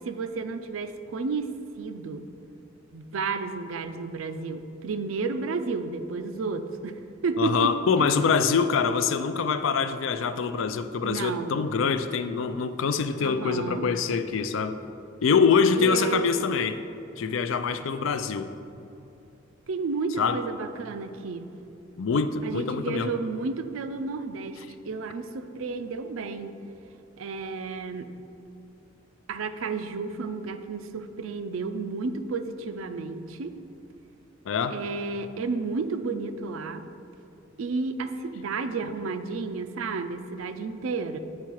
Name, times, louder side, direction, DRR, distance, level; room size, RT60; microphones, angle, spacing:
voice 1, 0.0-1.5 1.8-2.3 2.9-7.7 8.0-8.1 11.0-11.6 13.2-13.9 15.8-16.3 19.7-21.5 22.4-26.5 27.2-28.1 29.3-33.6 34.7-36.9 37.6-41.2, right 4 dB, 90° right, 9 dB, 0.4 m, -32 dB
voice 2, 7.4-14.8 15.2-16.8 17.2-18.5 20.2-20.4 22.0-23.1 34.5-34.8, left 5 dB, 75° left, 11 dB, 0.4 m, -24 dB
8.5 x 4.7 x 4.6 m, 2.7 s
head